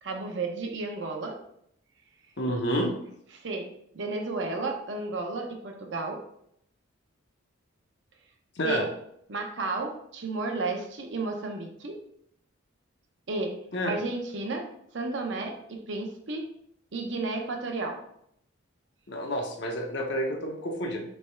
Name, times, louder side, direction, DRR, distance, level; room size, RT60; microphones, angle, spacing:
voice 1, 0.0-1.4 3.3-3.7 3.9-6.2 8.6-8.9 9.3-12.0 13.3-13.5 13.8-14.7 14.9-16.5 16.9-18.0, right 3 dB, 60° right, 3 dB, 0.7 m, -32 dB
voice 2, 2.4-2.9 8.6-8.8 13.7-13.9 19.1-21.0, equal, 55° left, 2 dB, 0.7 m, -29 dB
3.4 x 3.1 x 4.3 m, 0.71 s
head